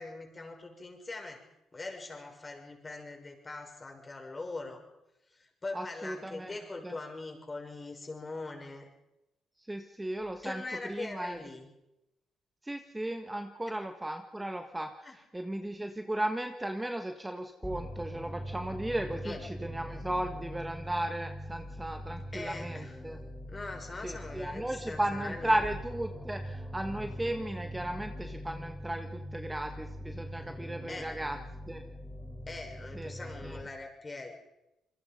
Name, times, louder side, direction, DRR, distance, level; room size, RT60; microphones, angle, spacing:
voice 1, 0.0-1.4 1.7-4.8 5.3-8.9 10.4-11.7 15.0-15.2 19.2-19.4 22.3-23.0 23.4-25.6 30.9-31.1 32.5-34.3, left 3 dB, 25° left, 2 dB, 6.5 m, -42 dB
voice 2, 5.7-6.6 6.8-7.0 9.7-11.4 12.6-23.2 24.0-31.4 31.7-31.8 33.0-33.1 33.4-33.6, right 1 dB, 10° right, 5 dB, 1.6 m, -35 dB
sound 1, 17.6-33.6, equal, 5° left, 5.0 m, -42 dB
28.0 x 22.0 x 5.4 m, 0.91 s
cardioid pair, 90°, 0 cm